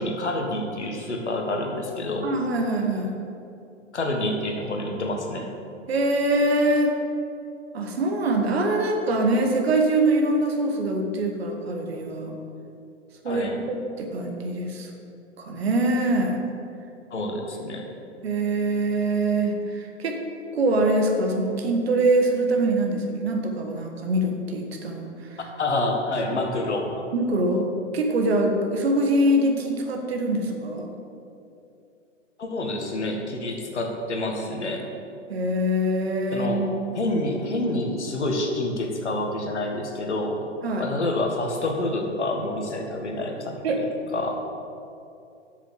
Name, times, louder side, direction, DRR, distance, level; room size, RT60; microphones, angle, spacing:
voice 1, 0.0-2.3 3.9-5.5 13.3-13.6 17.1-17.8 25.6-27.1 32.4-34.8 36.3-36.6 36.9-40.4 40.8-43.8 44.1-44.3, left 2 dB, 65° left, 2 dB, 1.7 m, -28 dB
voice 2, 2.2-3.2 5.9-6.9 7.7-12.4 13.2-14.9 15.4-16.4 18.2-20.2 20.5-25.1 26.3-26.4 27.1-27.7 27.9-30.9 35.3-36.7 40.6-40.9 43.6-43.8, right 1 dB, 55° right, 3 dB, 1.6 m, -24 dB
8.1 x 6.7 x 7.8 m, 2.6 s
figure-of-eight pair, 110°, 37 cm